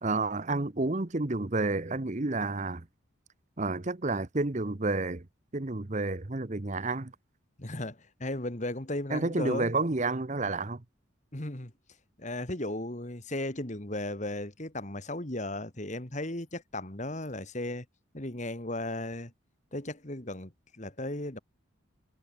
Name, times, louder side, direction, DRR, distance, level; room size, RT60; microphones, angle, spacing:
voice 1, 0.0-2.9 3.6-5.2 5.5-7.1 9.1-10.8, right 3 dB, 35° right, 0.9 m, -30 dB
voice 2, 7.6-9.7 11.3-11.7 12.2-17.9 18.1-19.3 19.7-21.4, left 1 dB, 35° left, 2.2 m, -36 dB
head